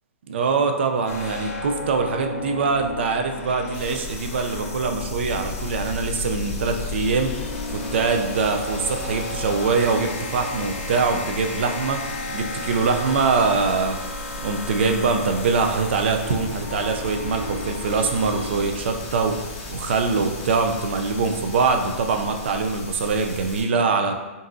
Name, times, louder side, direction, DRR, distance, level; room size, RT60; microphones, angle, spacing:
voice 1, 0.3-12.0 12.3-14.0 14.4-24.1, right 4 dB, 50° right, 5 dB, 0.4 m, -23 dB
sound 1, 1.1-18.7, left 2 dB, 80° left, 0.9 m, -33 dB
sound 2, 3.7-23.6, left 2 dB, 20° left, 0.8 m, -37 dB
5.2 x 2.6 x 2.6 m, 1.1 s
hypercardioid pair, 180°, 8 cm